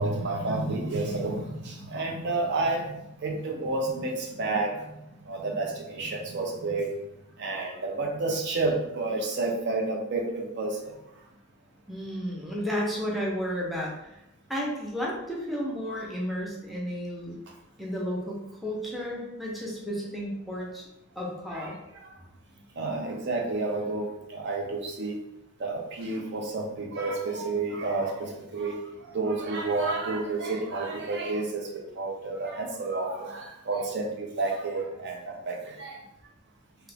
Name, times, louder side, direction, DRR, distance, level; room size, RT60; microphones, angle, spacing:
voice 1, 0.0-2.9 3.2-4.7 5.3-6.9 7.4-10.9 21.5-21.7 22.8-25.2 25.6-28.8 29.1-36.0, right 3 dB, 55° right, 0 dB, 0.6 m, -30 dB
voice 2, 11.9-13.9 14.5-17.4 17.8-20.8 21.2-21.8, equal, ahead, -4 dB, 0.6 m, -32 dB
2.9 x 2.4 x 3.3 m, 0.88 s
head